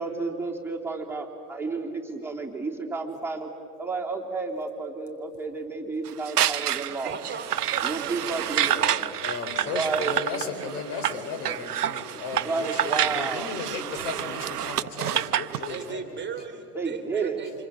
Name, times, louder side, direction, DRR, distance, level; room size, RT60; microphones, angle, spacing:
voice 1, 0.0-3.5 3.8-7.2 7.8-8.9 9.7-10.2 12.4-13.5 16.7-17.4, right 3 dB, 5° right, -2 dB, 3.2 m, -31 dB
sound 1, 6.1-15.8, right 11 dB, 90° right, 0.7 m, -28 dB
voice 2, 7.0-8.1 15.7-17.7, right 6 dB, 25° right, 5 dB, 2.3 m, -37 dB
voice 3, 8.7-16.4 17.4-17.5, left 4 dB, 60° left, 6 dB, 3.9 m, -36 dB
28.5 x 26.0 x 6.6 m, 2.7 s
hypercardioid pair, 80°, 45 cm